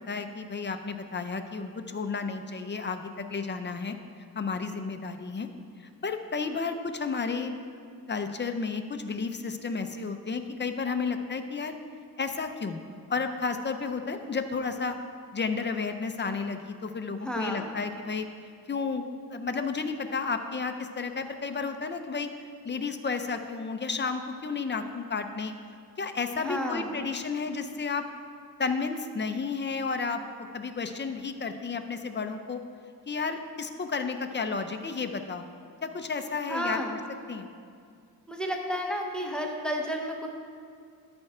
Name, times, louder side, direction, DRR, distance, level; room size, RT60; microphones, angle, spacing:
voice 1, 0.0-3.9 4.4-5.5 6.0-7.5 8.1-11.8 12.2-12.8 13.1-15.0 15.3-18.3 18.7-22.3 22.6-25.5 26.0-28.0 28.6-30.2 30.5-32.6 33.1-35.5 35.8-36.8 37.3-37.5, left 4 dB, 30° left, 7 dB, 0.6 m, -32 dB
voice 2, 17.2-17.7 26.4-27.0 36.5-37.0 38.3-40.3, equal, ahead, 1 dB, 0.9 m, -31 dB
13.0 x 4.4 x 4.9 m, 2.3 s
wide cardioid pair, 105°, 38 cm